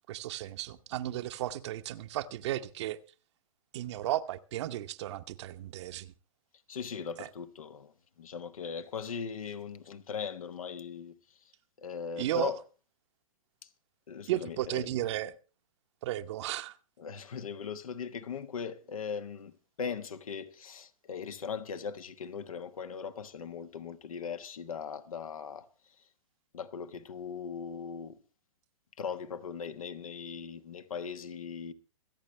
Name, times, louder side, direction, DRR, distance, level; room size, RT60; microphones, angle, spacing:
voice 1, 0.1-3.0 3.7-6.1 7.2-7.3 12.2-12.5 14.3-15.3 16.0-16.8, right 13 dB, 50° right, 0.9 m, -34 dB
voice 2, 6.7-11.5 11.8-12.6 13.6-13.7 14.1-14.9 17.0-19.5 19.8-25.7 26.5-28.2 29.0-31.7, left 6 dB, 75° left, 1.3 m, -39 dB
25.5 x 8.9 x 3.2 m
hypercardioid pair, 120°, 18 cm